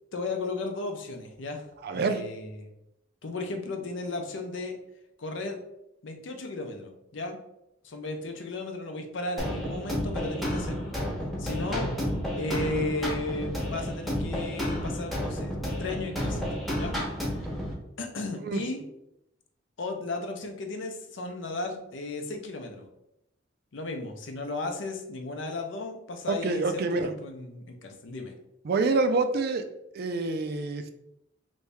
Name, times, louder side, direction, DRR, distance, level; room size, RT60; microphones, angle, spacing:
voice 1, 0.1-1.6 1.9-2.7 3.2-4.8 5.2-5.6 6.0-7.4 7.8-10.9 11.4-11.9 12.4-15.5 15.8-16.9 18.0-18.8 19.8-22.9 23.7-28.3, left 2 dB, 70° left, 4 dB, 0.6 m, -35 dB
voice 2, 1.8-2.2 18.4-18.6 26.3-27.1 28.6-29.7 29.9-30.9, right 3 dB, 55° right, 8 dB, 0.4 m, -27 dB
sound 1, 9.4-17.7, equal, ahead, 0.8 m, -31 dB
3.1 x 2.6 x 3.4 m, 0.82 s
head